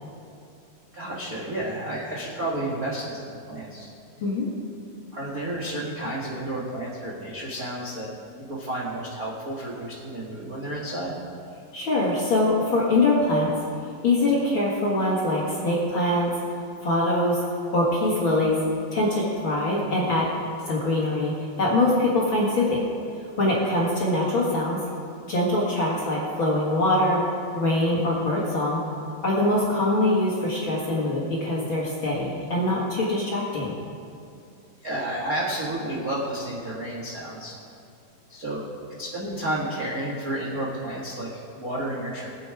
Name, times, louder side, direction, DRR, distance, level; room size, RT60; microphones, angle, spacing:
voice 1, 0.9-3.9 5.1-8.1 8.4-11.1 23.7-23.8 34.8-37.5 38.3-38.6 39.0-42.3, right 1 dB, 45° right, -5 dB, 1.2 m, -31 dB
voice 2, 11.7-13.5 14.0-16.3 16.8-18.6 18.9-20.3 20.7-22.8 23.4-24.8 25.3-27.2 27.5-28.8 29.2-33.7, left 1 dB, 45° left, -5 dB, 1.9 m, -23 dB
19.5 x 8.2 x 4.8 m, 2.4 s
omnidirectional pair, 4.3 m